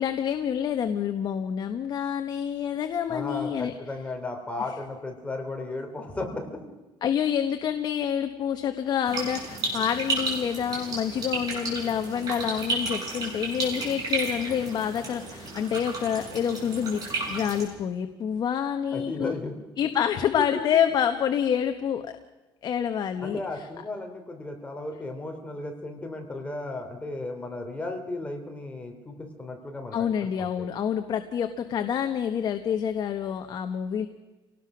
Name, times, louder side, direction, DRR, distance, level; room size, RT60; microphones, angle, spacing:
voice 1, 0.0-3.7 7.0-19.3 19.8-22.2 22.6-23.4 29.9-34.1, left 8 dB, 45° left, 7 dB, 1.1 m, -27 dB
voice 2, 3.1-6.6 18.9-19.5 20.5-20.6 23.2-30.6, left 2 dB, 15° left, 3 dB, 2.9 m, -35 dB
sound 1, 9.1-17.7, right 3 dB, 40° right, 7.4 m, -32 dB
26.5 x 18.5 x 6.1 m, 1.1 s
cardioid pair, 155°, 10 cm